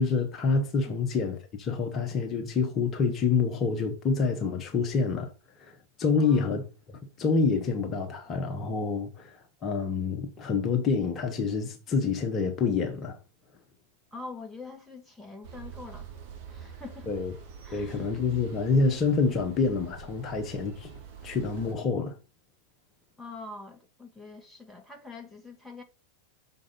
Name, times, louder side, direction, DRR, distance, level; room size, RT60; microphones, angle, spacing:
voice 1, 0.0-5.3 5.6-13.2 17.1-17.3 17.7-22.2, left 4 dB, 30° left, 1.3 m, -27 dB
voice 2, 6.2-6.5 14.1-16.1 16.5-17.1 17.6-18.1 23.2-25.8, left 3 dB, ahead, 1.9 m, -44 dB
sound 1, 15.4-21.7, right 6 dB, 45° right, 2.1 m, -45 dB
6.5 x 5.5 x 5.5 m
figure-of-eight pair, 90°, 0 cm